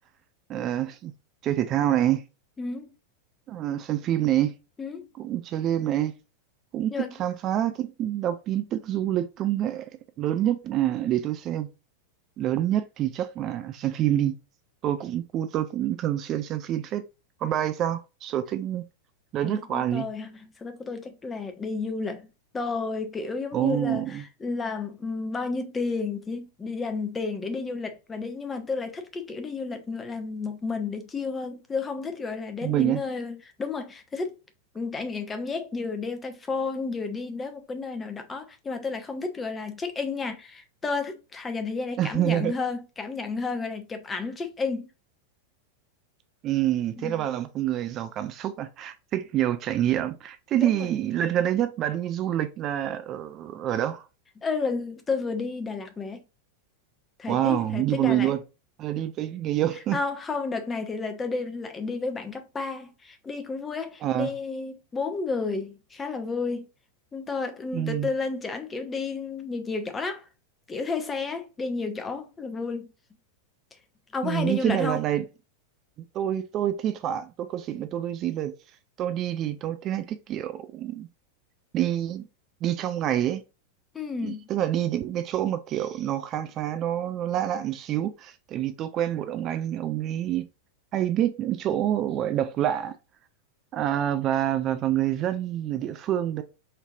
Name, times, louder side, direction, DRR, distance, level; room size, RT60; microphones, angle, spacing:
voice 1, 0.5-1.1 1.4-2.2 3.5-4.5 5.2-6.1 6.7-6.9 7.2-9.8 10.2-11.7 12.4-14.4 14.8-17.0 17.4-18.8 19.3-20.1 23.5-24.2 32.6-33.0 42.0-42.5 46.4-54.0 57.3-58.4 58.8-60.0 64.0-64.3 67.7-68.1 74.2-75.3 76.1-78.5 79.0-81.1 81.7-82.3 82.6-83.4 84.2-90.5 90.9-92.9 93.7-96.4, right 12 dB, 35° right, 0.4 m, -27 dB
voice 2, 2.6-2.9 4.8-5.1 6.9-7.2 19.4-22.3 22.5-34.3 34.7-44.9 47.0-47.3 50.6-50.9 54.4-56.2 57.2-58.3 59.9-66.7 67.1-70.3 70.7-72.9 74.1-75.0 83.9-84.5, left 4 dB, 15° left, 0.7 m, -32 dB
4.4 x 2.8 x 2.4 m
figure-of-eight pair, 90°, 0 cm